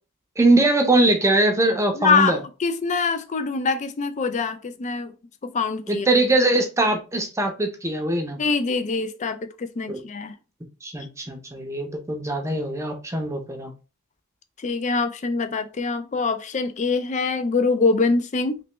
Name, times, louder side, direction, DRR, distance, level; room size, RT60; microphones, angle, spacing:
voice 1, 0.4-2.4 5.9-8.4 9.9-10.0 10.8-13.7, right 2 dB, 15° right, 0.6 m, -21 dB
voice 2, 1.9-5.1 5.4-6.1 8.4-10.4 14.6-18.6, left 4 dB, 35° left, 0.4 m, -24 dB
3.3 x 3.0 x 3.0 m
head